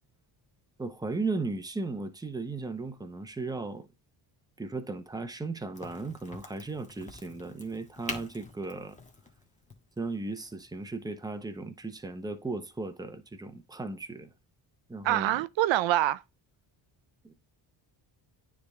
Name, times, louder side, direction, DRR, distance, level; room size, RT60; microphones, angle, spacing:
voice 1, 0.8-3.9 4.6-9.0 10.0-14.3 14.9-15.3 17.2-17.3, right 3 dB, 10° right, 0.9 m, -36 dB
Crack, 5.7-11.2, left 3 dB, 15° left, 1.5 m, -45 dB
voice 2, 15.0-16.2, right 14 dB, 75° right, 0.6 m, -25 dB
9.4 x 3.6 x 3.5 m
cardioid pair, 105°, 46 cm